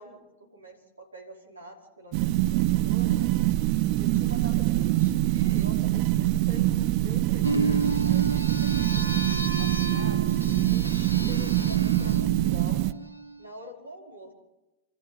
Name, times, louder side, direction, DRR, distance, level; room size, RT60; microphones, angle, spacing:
voice 1, 0.0-3.2 3.9-10.3 10.6-12.8 13.4-14.3, equal, 80° right, 1 dB, 5.0 m, -46 dB
sound 1, 2.1-12.9, right 15 dB, 45° right, 0.7 m, -24 dB
sound 2, 7.4-13.5, right 2 dB, 90° left, 1.5 m, -32 dB
28.5 x 13.5 x 8.5 m, 1.0 s
figure-of-eight pair, 90°, 0 cm